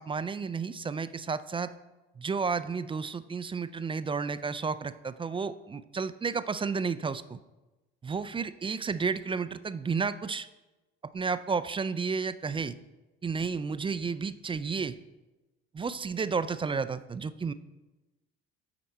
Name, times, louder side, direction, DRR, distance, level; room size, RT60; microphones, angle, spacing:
voice 1, 0.0-1.7 2.2-7.4 8.0-10.5 11.1-12.7 13.2-15.0 15.7-17.5, right 5 dB, 20° right, 13 dB, 0.3 m, -32 dB
8.7 x 4.3 x 4.2 m, 1.1 s
hypercardioid pair, 60°, 31 cm